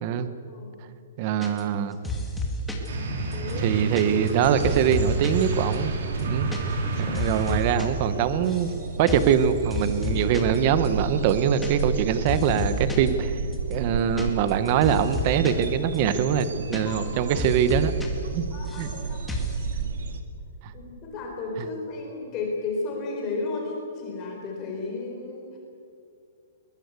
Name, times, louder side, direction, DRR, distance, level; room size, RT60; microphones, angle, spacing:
voice 1, 1.2-2.0 3.6-5.9 6.2-6.7 7.0-8.7 9.0-13.4 13.7-17.9 18.3-18.4 18.8-18.9 20.6-20.7, right 8 dB, 30° right, 11 dB, 1.1 m, -23 dB
sound 1, 1.4-1.8 2.0-2.9 3.3-5.4 5.7-5.8 6.1-6.6 6.8-7.9 8.1-8.7 9.1-9.4 9.7-10.6 10.8-10.9 11.2-12.0 12.3-13.1 13.5-15.7 15.9-16.0 16.3-17.1 17.4-18.1 18.3-19.0 19.3-19.6, left 2 dB, 5° left, 2.2 m, -31 dB
sound 2, 2.9-8.0, right 3 dB, 55° right, 4.5 m, -30 dB
voice 2, 3.3-4.0 6.8-7.3 16.8-17.4 18.5-19.2 20.7-25.6, left 3 dB, 20° left, -1 dB, 4.3 m, -34 dB
sound 3, 4.4-20.2, right 5 dB, 70° right, 2.1 m, -33 dB
22.0 x 21.0 x 8.3 m, 2.3 s
hypercardioid pair, 175°, 0 cm